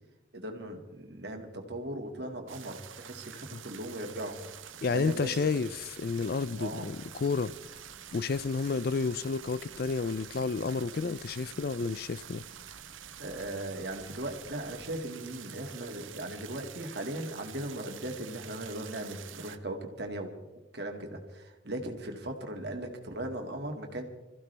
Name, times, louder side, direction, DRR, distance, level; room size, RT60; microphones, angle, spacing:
voice 1, 0.3-4.4 4.9-5.4 6.6-6.9 13.2-20.3 20.7-24.0, right 1 dB, 55° right, 2.2 m, -38 dB
sound 1, 2.5-19.6, right 10 dB, 90° right, 0.9 m, -48 dB
sound 2, 4.2-14.9, right 1 dB, 10° right, 1.4 m, -59 dB
voice 2, 4.8-7.8 8.1-12.4, left 4 dB, 50° left, 0.4 m, -31 dB
26.5 x 15.0 x 3.4 m
head